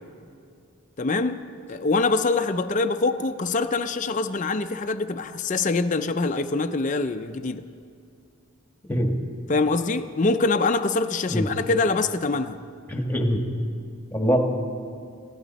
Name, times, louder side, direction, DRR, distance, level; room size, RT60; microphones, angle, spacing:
voice 1, 1.0-1.4 1.7-7.6 9.5-12.6, left 3 dB, 35° left, 8 dB, 0.5 m, -24 dB
voice 2, 12.9-13.4 14.1-14.4, equal, 10° left, 2 dB, 1.3 m, -23 dB
21.0 x 16.0 x 4.1 m, 2.4 s
head